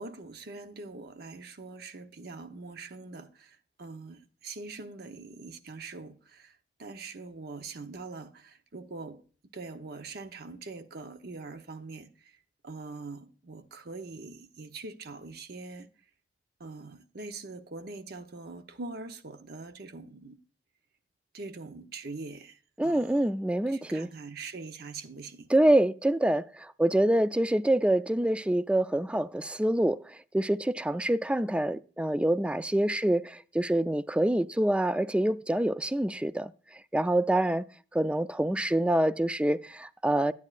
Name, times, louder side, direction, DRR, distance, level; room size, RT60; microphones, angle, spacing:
voice 1, 0.0-9.2 9.5-12.4 12.6-15.9 16.6-20.4 21.3-23.2 23.7-25.5, right 3 dB, 65° right, 0.9 m, -43 dB
voice 2, 22.8-24.1 25.5-36.5 36.9-37.7 37.9-40.3, right 1 dB, 5° right, 0.3 m, -26 dB
9.8 x 9.3 x 2.4 m
head